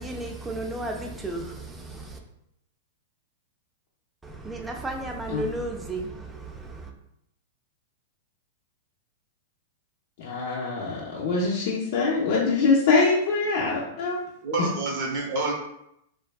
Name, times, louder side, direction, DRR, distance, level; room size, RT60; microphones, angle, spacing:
voice 1, 0.0-2.2 4.2-6.9, right 2 dB, 10° right, 2 dB, 0.3 m, -34 dB
voice 2, 10.2-14.2, left 4 dB, 60° left, -4 dB, 0.5 m, -24 dB
voice 3, 14.4-15.5, right 2 dB, 50° right, -1 dB, 0.7 m, -28 dB
2.6 x 2.3 x 2.2 m, 0.78 s
hypercardioid pair, 140°, 0 cm